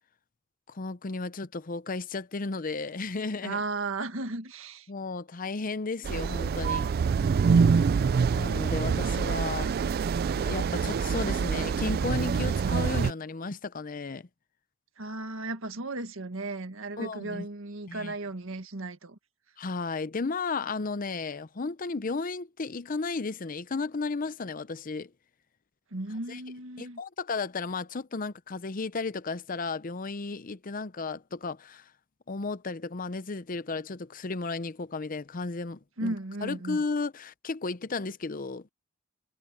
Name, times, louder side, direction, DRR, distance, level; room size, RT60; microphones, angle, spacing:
voice 1, 0.7-3.6 4.9-6.9 8.3-9.7 10.3-14.3 17.0-17.5 17.9-18.1 19.6-25.1 26.3-26.4 26.8-31.8 32.3-36.1 36.4-38.7, left 3 dB, 40° left, 0.7 m, -34 dB
voice 2, 3.4-4.9 15.0-19.2 25.9-27.0 36.0-36.8, right 2 dB, 80° right, 1.8 m, -35 dB
sound 1, 6.0-13.1, right 5 dB, 50° right, 0.3 m, -26 dB
head